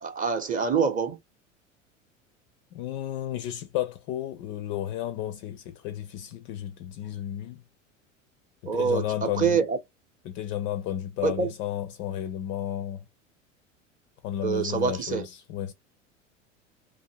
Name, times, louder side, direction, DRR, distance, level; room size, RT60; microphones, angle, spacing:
voice 1, 0.0-1.2 8.6-9.8 11.2-11.5 14.4-15.3, right 6 dB, 20° right, 0.7 m, -26 dB
voice 2, 2.7-7.6 8.6-9.6 10.2-13.0 14.2-15.7, left 11 dB, 30° left, 0.4 m, -33 dB
2.5 x 2.5 x 2.8 m
figure-of-eight pair, 80°, 38 cm